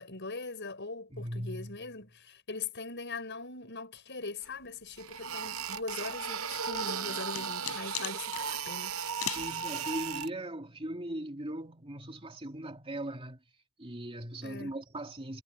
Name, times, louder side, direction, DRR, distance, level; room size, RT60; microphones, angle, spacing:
voice 1, 0.0-9.0 14.4-14.8, left 3 dB, 55° left, 6.5 m, -41 dB
voice 2, 1.1-1.8 9.1-13.4 13.8-15.4, right 1 dB, 25° right, 2.6 m, -39 dB
sound 1, 4.5-4.6 5.0-10.3, right 6 dB, 75° right, 0.8 m, -36 dB
sound 2, 6.5-8.5 9.2-9.5, left 11 dB, 90° left, 5.0 m, -38 dB
head